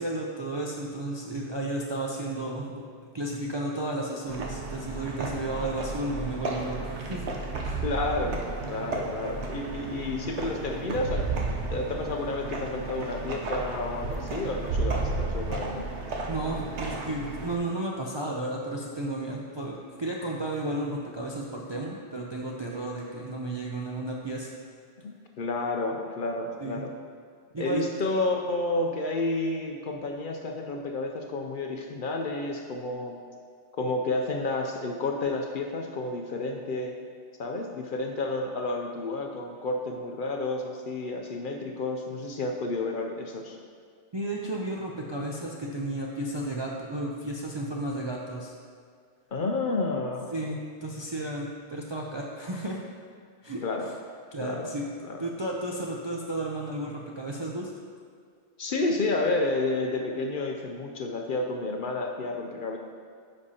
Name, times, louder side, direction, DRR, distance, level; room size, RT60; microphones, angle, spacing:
voice 1, 0.0-2.8 3.1-7.2 7.6-7.8 16.3-24.5 26.6-26.8 27.5-27.8 44.1-48.5 50.3-52.8 53.4-53.6 54.3-54.9 55.2-57.7, right 1 dB, 40° right, -2 dB, 0.4 m, -33 dB
sound 1, 4.3-17.6, right 3 dB, 80° right, 1.1 m, -33 dB
voice 2, 7.8-11.3 11.7-15.9 25.0-26.9 27.6-33.2 33.7-37.0 37.4-43.6 49.3-50.3 53.6-53.9 54.4-54.7 55.1-55.2 58.6-62.8, left 2 dB, 60° left, 2 dB, 0.6 m, -30 dB
9.7 x 5.3 x 2.8 m, 2.1 s
omnidirectional pair, 1.2 m